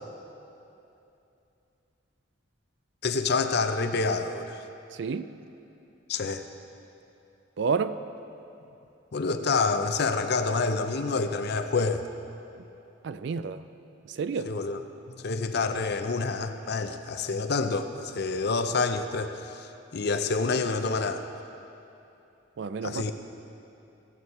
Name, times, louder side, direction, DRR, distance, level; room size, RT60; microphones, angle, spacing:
voice 1, 3.0-4.6 6.1-6.4 9.1-12.0 14.4-14.8 15.2-21.2 22.8-23.1, left 4 dB, 60° left, 8 dB, 0.6 m, -28 dB
voice 2, 7.6-7.9 13.0-13.6 14.1-14.5 22.6-23.1, right 5 dB, 65° right, 12 dB, 0.4 m, -29 dB
15.5 x 7.9 x 4.2 m, 2.8 s
head